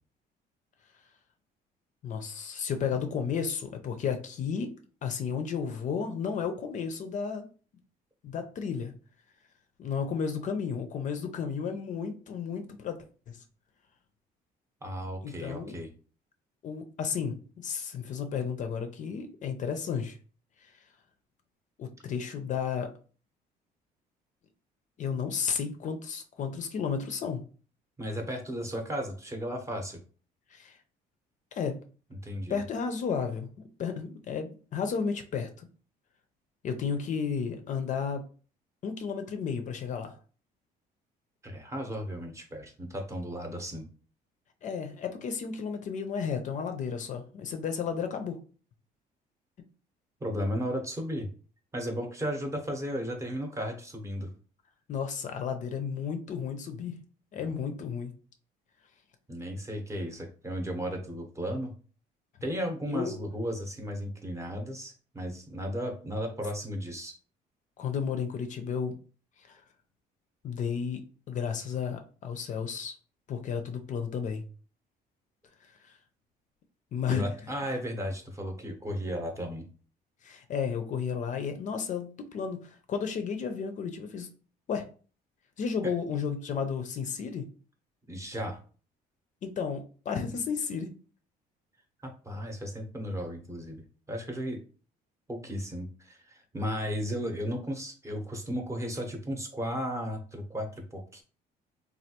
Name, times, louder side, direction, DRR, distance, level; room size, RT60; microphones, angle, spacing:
voice 1, 2.0-4.7 5.0-7.4 8.2-8.9 9.8-13.4 15.2-15.8 16.6-20.2 21.8-22.9 25.0-27.4 30.5-30.8 31.5-31.8 32.5-35.7 36.6-38.2 38.8-40.2 44.6-48.4 54.9-57.1 57.3-58.1 62.9-63.2 67.8-69.0 69.5-69.6 70.4-72.9 73.3-74.4 75.9-76.0 76.9-77.3 80.2-84.3 84.7-84.9 85.6-87.5 89.4-90.9, left 6 dB, 45° left, 6 dB, 0.5 m, -33 dB
voice 2, 14.8-15.9 28.0-30.0 32.2-32.6 41.4-43.9 50.2-51.3 51.7-54.3 57.4-57.5 59.3-61.7 62.4-67.1 77.1-79.7 85.8-85.9 88.1-88.6 92.0-93.8 94.1-94.6 95.3-101.2, equal, 15° right, 3 dB, 0.8 m, -35 dB
3.2 x 2.3 x 2.8 m, 0.39 s
cardioid pair, 110°, 17 cm